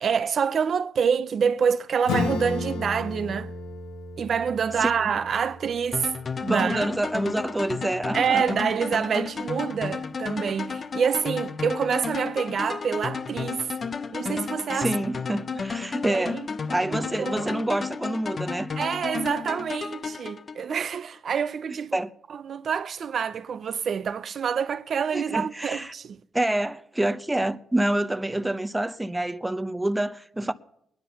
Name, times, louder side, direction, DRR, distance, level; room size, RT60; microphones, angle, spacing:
voice 1, 0.0-3.5 4.2-6.1 6.5-6.9 8.1-13.7 14.1-14.9 16.1-16.5 16.9-17.5 18.8-22.0 22.3-26.2, right 7 dB, 55° right, 0.6 m, -27 dB
Acoustic guitar / Strum, 2.1-7.3, left 4 dB, 85° left, 2.1 m, -34 dB
voice 2, 4.8-5.1 6.4-8.4 14.7-18.7 21.9-22.1 25.1-25.9 26.3-30.5, right 1 dB, 10° right, 0.8 m, -27 dB
sound 1, 5.9-21.0, left 5 dB, 40° left, 0.8 m, -33 dB
19.5 x 10.5 x 6.9 m
cardioid pair, 90°, 0 cm